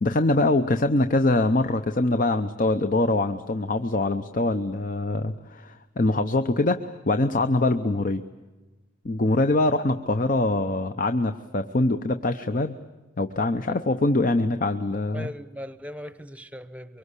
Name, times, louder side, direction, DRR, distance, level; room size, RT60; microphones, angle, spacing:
voice 1, 0.0-8.2 9.0-12.7 13.2-15.3, left 2 dB, 45° left, 0.8 m, -23 dB
voice 2, 15.1-17.0, equal, 5° right, 0.9 m, -39 dB
24.0 x 24.0 x 8.2 m
head